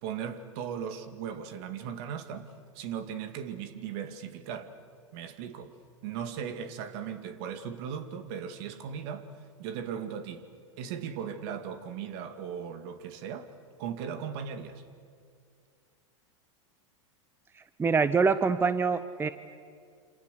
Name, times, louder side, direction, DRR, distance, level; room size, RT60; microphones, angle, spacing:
voice 1, 0.0-2.5 2.7-4.7 5.1-5.7 6.0-9.3 9.6-10.5 10.8-13.5 13.8-14.8, right 8 dB, 55° right, 2.3 m, -37 dB
voice 2, 17.8-19.3, right 5 dB, 15° right, 0.8 m, -25 dB
28.0 x 27.0 x 6.9 m
hypercardioid pair, 110°, 16 cm